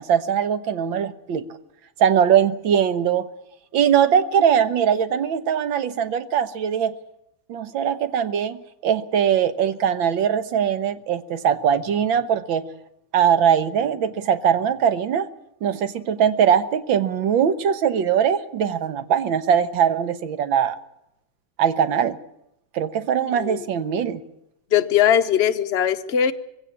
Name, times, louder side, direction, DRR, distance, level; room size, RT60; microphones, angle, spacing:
voice 1, 0.0-1.5 2.0-3.3 3.7-6.9 7.5-12.6 13.1-15.3 15.6-20.8 21.6-22.2 22.7-24.2, right 8 dB, 80° right, 12 dB, 1.8 m, -21 dB
voice 2, 24.7-26.3, left 9 dB, 40° left, 7 dB, 1.0 m, -20 dB
20.5 x 16.5 x 8.6 m, 0.84 s
omnidirectional pair, 2.1 m